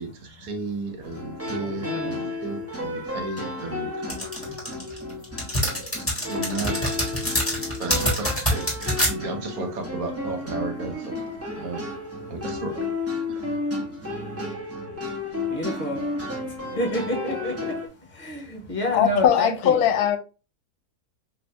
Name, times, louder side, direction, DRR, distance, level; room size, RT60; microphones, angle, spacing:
voice 1, 0.0-3.9 4.2-4.3 4.6-4.7 6.3-7.0 7.8-11.1 11.6-11.8 12.3-12.8 13.3-13.6, right 3 dB, 70° right, 1.2 m, -34 dB
sound 1, 1.0-17.9, left 2 dB, 20° right, 0.4 m, -32 dB
voice 2, 1.6-2.3 15.5-16.0 16.8-17.7 18.2-19.8, left 1 dB, 40° left, 1.0 m, -29 dB
sound 2, 4.1-9.1, equal, 10° left, 1.4 m, -25 dB
voice 3, 18.9-20.2, left 9 dB, 80° left, 1.1 m, -20 dB
2.8 x 2.6 x 3.2 m
omnidirectional pair, 1.6 m